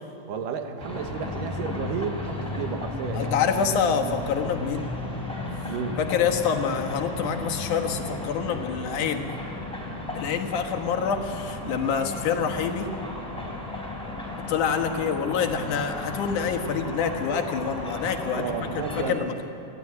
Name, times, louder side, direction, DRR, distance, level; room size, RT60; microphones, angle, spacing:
voice 1, 0.3-3.4 5.7-6.0 18.3-19.2, right 6 dB, 80° right, 6 dB, 2.9 m, -32 dB
sound 1, 0.8-19.1, left 2 dB, ahead, 3.4 m, -34 dB
voice 2, 3.1-4.9 6.0-9.3 10.1-12.9 14.5-18.4 19.0-19.3, left 7 dB, 70° left, 3 dB, 2.8 m, -26 dB
28.0 x 11.5 x 9.7 m, 2.7 s
omnidirectional pair, 3.8 m